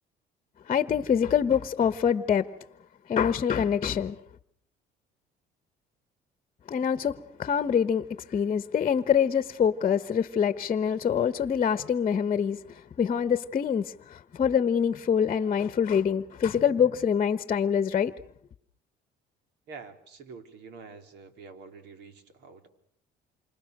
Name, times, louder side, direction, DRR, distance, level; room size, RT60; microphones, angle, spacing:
voice 1, 0.7-2.5 3.1-4.2 6.7-18.1, left 7 dB, 35° left, 12 dB, 1.1 m, -25 dB
voice 2, 19.7-22.7, right 4 dB, 75° right, 7 dB, 3.6 m, -47 dB
28.0 x 26.0 x 6.6 m, 0.67 s
cardioid pair, 120°, 18 cm